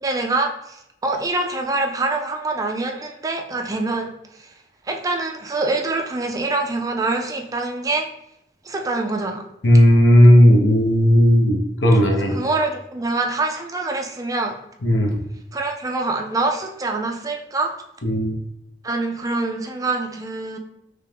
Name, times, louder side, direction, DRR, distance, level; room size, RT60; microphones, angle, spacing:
voice 1, 0.0-4.5 4.9-8.1 8.6-9.4 12.2-14.6 15.5-17.8 18.8-20.6, right 2 dB, 20° right, 3 dB, 0.4 m, -25 dB
voice 2, 9.6-12.3 14.8-15.2 18.0-18.4, equal, 70° left, 1 dB, 0.9 m, -14 dB
3.4 x 3.2 x 3.3 m, 0.80 s
head